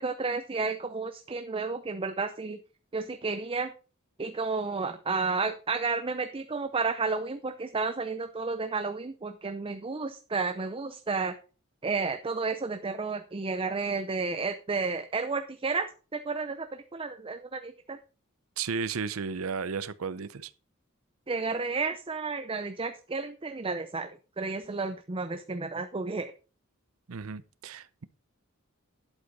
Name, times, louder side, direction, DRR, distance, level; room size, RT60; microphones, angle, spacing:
voice 1, 0.0-2.6 2.9-3.7 4.2-11.3 11.8-18.0 21.3-24.1 24.4-26.3, right 4 dB, 25° right, 0.6 m, -32 dB
voice 2, 18.6-20.5 27.1-28.1, right 5 dB, 80° right, 0.6 m, -34 dB
11.5 x 8.2 x 4.0 m
head